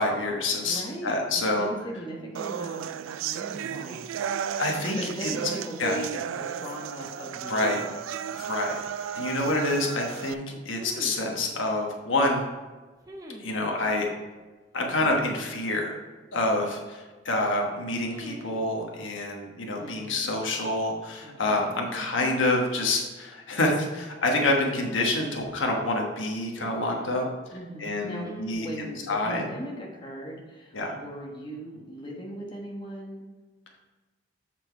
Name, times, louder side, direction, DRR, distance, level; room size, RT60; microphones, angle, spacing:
voice 1, 0.0-1.7 4.6-5.3 5.8-6.0 7.5-7.8 8.4-8.8 9.1-12.4 13.4-14.1 14.7-16.0 16.3-27.3 27.8-29.4 30.7-31.0, left 2 dB, 80° left, 1 dB, 1.2 m, -27 dB
voice 2, 0.6-4.1 4.5-4.6 4.9-7.9 19.7-20.4 21.2-22.0 27.5-33.3, right 1 dB, 25° left, -2 dB, 1.2 m, -39 dB
sound 1, 2.3-10.3, right 8 dB, 90° right, 0.3 m, -34 dB
sound 2, 8.8-8.9 10.8-11.3 13.0-13.5 15.0-15.5 18.0-18.6 19.7-20.4 21.8-22.5 22.8-22.9 24.7-25.7 26.6-27.2 28.2-28.5, right 1 dB, 20° right, 0.6 m, -43 dB
7.6 x 4.4 x 4.5 m, 1.3 s
head